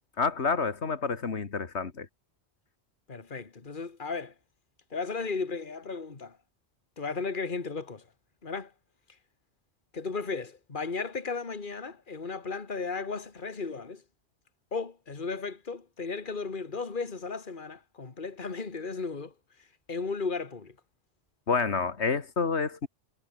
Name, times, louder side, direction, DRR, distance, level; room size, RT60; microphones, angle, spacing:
voice 1, 0.2-2.1 21.5-22.9, left 5 dB, 90° left, 2.1 m, -28 dB
voice 2, 3.1-4.3 4.9-6.4 7.0-8.1 8.4-8.7 9.9-14.0 14.7-19.3 19.6-20.8, left 4 dB, 50° left, 2.1 m, -35 dB
omnidirectional pair, 1.1 m